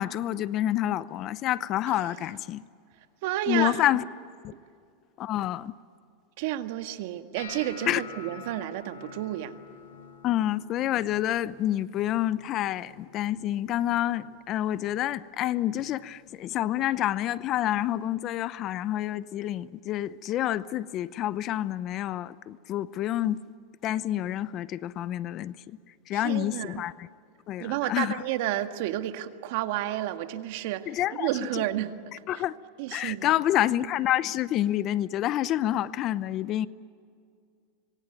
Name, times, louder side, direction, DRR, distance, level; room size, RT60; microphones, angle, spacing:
voice 1, 0.0-2.6 3.5-4.0 4.4-4.5 5.2-5.7 7.9-8.0 10.2-23.4 23.8-25.8 26.1-27.1 27.5-28.2 30.9-31.6 32.3-32.5 32.9-36.7, left 13 dB, 40° left, 0.8 m, -28 dB
voice 2, 3.2-3.9 6.4-9.6 26.1-26.9 27.6-32.0 32.3-32.4 32.8-33.3, right 14 dB, 65° right, 1.8 m, -31 dB
sound 1, 7.3-13.4 13.7-14.2 14.6-15.1 15.8-16.0 17.7-17.8, left 6 dB, 80° left, 7.1 m, -48 dB
26.0 x 23.5 x 9.2 m
supercardioid pair, 130°, 0 cm